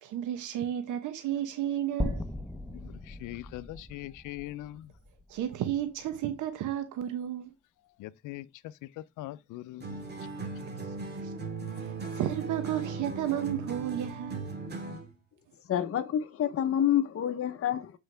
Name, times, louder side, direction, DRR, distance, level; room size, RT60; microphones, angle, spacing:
voice 1, 0.0-2.2 5.3-7.5 11.2-11.3 11.8-14.5, right 11 dB, 85° right, 0.9 m, -32 dB
sound 1, 2.0-6.2, left 1 dB, 5° left, 0.7 m, -38 dB
voice 2, 2.7-4.9 8.0-10.1, left 16 dB, 85° left, 0.5 m, -42 dB
sound 2, 9.8-15.1, right 4 dB, 35° right, 2.1 m, -38 dB
voice 3, 15.7-17.9, left 10 dB, 50° left, 0.8 m, -28 dB
7.8 x 4.7 x 3.3 m
cardioid pair, 90°, 30 cm